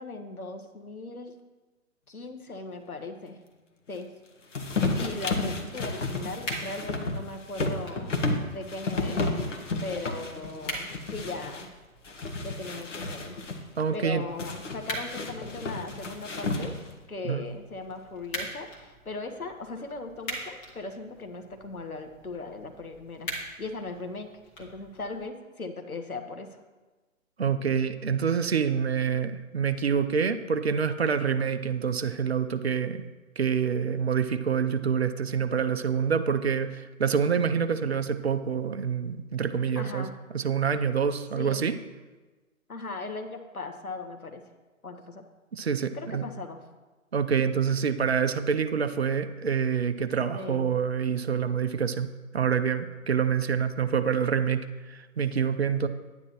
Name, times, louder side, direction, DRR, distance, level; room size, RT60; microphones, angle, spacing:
voice 1, 0.0-1.3 2.1-3.4 3.9-4.1 5.0-8.2 8.5-9.2 9.8-11.7 12.4-13.4 13.9-16.8 17.1-23.3 23.6-24.3 24.6-26.6 39.7-40.1 41.3-41.7 42.7-44.4 44.8-45.2 45.9-46.6 50.3-50.7, left 3 dB, 80° left, 5 dB, 1.4 m, -38 dB
sound 1, 4.5-11.7 12.0-13.6 14.4-17.0, left 3 dB, 55° left, 1.3 m, -32 dB
sound 2, 6.3-25.3, equal, 10° left, 0.9 m, -43 dB
voice 2, 13.8-14.2 17.2-17.4 27.4-33.0 33.4-40.1 40.3-41.7 45.5-46.2 47.1-55.9, right 7 dB, 50° right, 10 dB, 0.6 m, -27 dB
10.5 x 9.6 x 3.0 m, 1.2 s
figure-of-eight pair, 135°, 42 cm